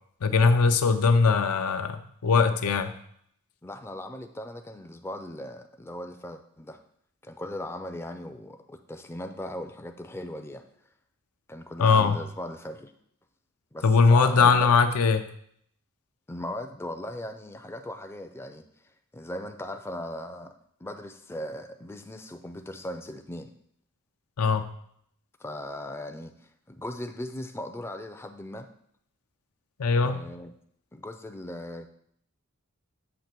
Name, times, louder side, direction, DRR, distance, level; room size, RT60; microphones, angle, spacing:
voice 1, 0.2-2.9 11.8-12.2 13.8-15.2 24.4-24.6 29.8-30.2, left 4 dB, 85° left, 8 dB, 0.6 m, -21 dB
voice 2, 3.6-6.8 7.2-10.6 11.5-12.9 13.7-14.7 16.3-18.6 19.1-20.5 20.8-23.5 25.4-26.3 26.7-28.7 30.0-30.5 30.9-31.9, left 1 dB, 10° left, 5 dB, 0.4 m, -38 dB
7.0 x 2.9 x 5.9 m, 0.68 s
head